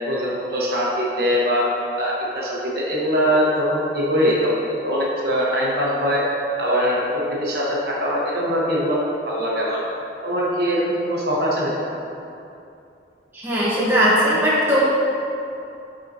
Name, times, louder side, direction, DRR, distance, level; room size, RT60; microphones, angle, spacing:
voice 1, 0.1-1.7 2.0-6.2 6.6-7.0 7.4-9.0 9.2-9.8 10.2-11.7, equal, 55° right, -5 dB, 1.0 m, -22 dB
voice 2, 13.3-14.8, equal, 10° right, -8 dB, 1.0 m, -18 dB
8.9 x 4.3 x 2.7 m, 2.7 s
head